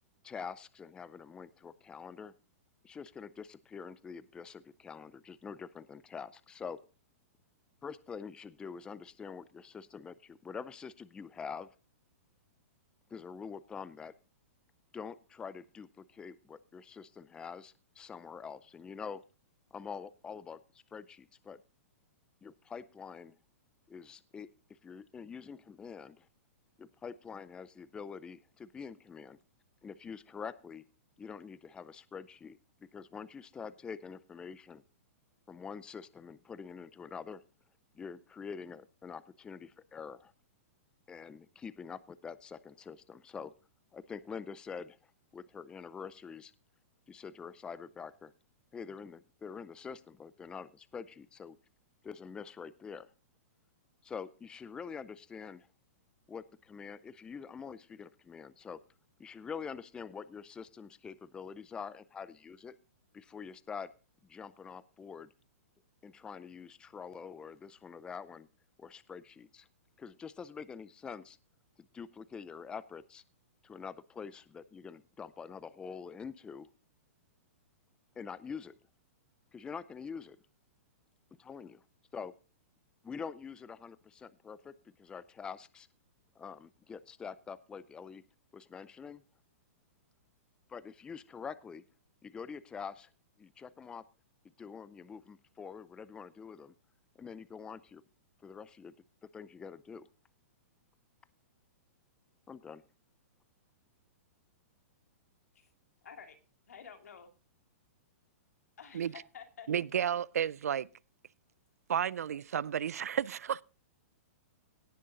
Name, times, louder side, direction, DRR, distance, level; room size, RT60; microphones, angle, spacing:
voice 1, 0.2-2.3 2.8-6.8 7.8-11.7 13.1-14.1 14.9-19.2 19.7-20.6 20.9-21.6 22.4-23.4 23.9-26.3 26.8-29.4 29.8-30.8 31.2-34.8 35.5-37.4 38.0-40.3 41.1-43.5 43.9-45.0 45.3-46.5 47.1-48.3 48.7-51.6 52.0-53.1 54.0-55.7 56.3-58.8 59.2-62.7 63.1-63.9 64.2-65.3 66.0-68.5 68.8-69.7 70.0-71.4 71.9-73.2 73.6-76.7 78.2-78.7 79.5-80.4 81.4-81.8 82.1-82.3 83.0-84.7 85.0-85.9 86.4-88.2 88.5-89.2 90.7-91.8 92.2-93.1 93.4-94.0 94.6-96.7 97.2-98.0 98.4-98.9 99.3-100.1 102.5-102.8, left 6 dB, 10° left, 0.5 m, -45 dB
voice 2, 106.0-106.4 106.7-107.3 108.8-109.7, left 7 dB, 85° left, 2.5 m, -50 dB
voice 3, 109.7-110.9 111.9-113.6, right 9 dB, 90° right, 0.4 m, -32 dB
18.0 x 6.6 x 4.0 m
hypercardioid pair, 145°, 8 cm